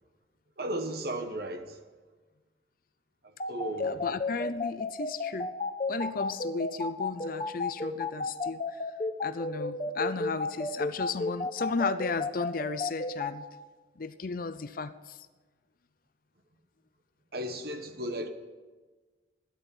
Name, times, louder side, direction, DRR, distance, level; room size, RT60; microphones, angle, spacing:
voice 1, 0.6-1.8 3.5-4.0 17.3-18.3, right 1 dB, 60° right, 1.2 m, -35 dB
sound 1, 3.4-13.3, left 3 dB, 35° left, 1.0 m, -31 dB
voice 2, 3.8-5.5 5.9-8.9 9.2-13.5 14.0-15.2, left 4 dB, 50° left, 0.6 m, -34 dB
13.0 x 9.9 x 8.5 m
head